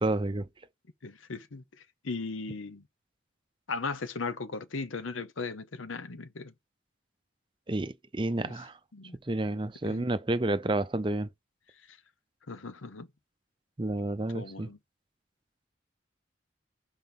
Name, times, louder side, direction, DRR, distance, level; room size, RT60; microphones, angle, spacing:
voice 1, 0.0-0.5 7.7-8.7 9.3-11.3 13.8-14.7, right 2 dB, 25° right, 0.5 m, -30 dB
voice 2, 1.0-1.6 2.0-2.8 3.7-6.5 8.5-8.6 8.9-9.2 9.9-10.1 11.9-12.0 12.5-13.1 14.3-14.8, left 4 dB, 90° left, 0.9 m, -37 dB
6.0 x 4.3 x 5.3 m
head